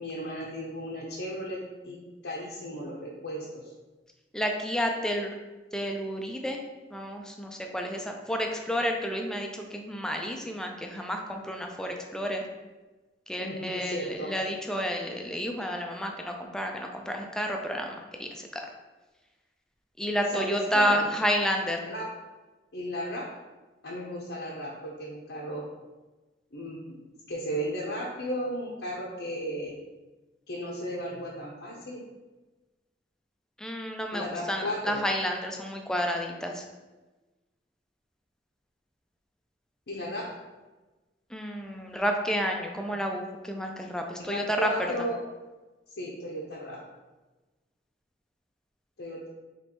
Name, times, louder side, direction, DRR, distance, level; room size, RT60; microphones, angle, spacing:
voice 1, 0.0-1.6 1.8-2.0 2.2-3.7 13.4-14.3 20.3-21.1 21.8-22.0 22.7-23.2 23.8-25.6 26.5-26.8 27.3-29.7 30.5-32.0 34.1-35.0 39.9-40.2 44.2-45.2 45.9-46.8 49.0-49.3, equal, 75° left, -4 dB, 0.7 m, -35 dB
voice 2, 4.3-5.3 5.7-6.6 6.9-12.4 13.3-18.6 20.0-21.9 33.6-36.6 41.3-44.7, equal, 5° left, 2 dB, 0.4 m, -30 dB
5.1 x 3.1 x 3.0 m, 1.2 s
head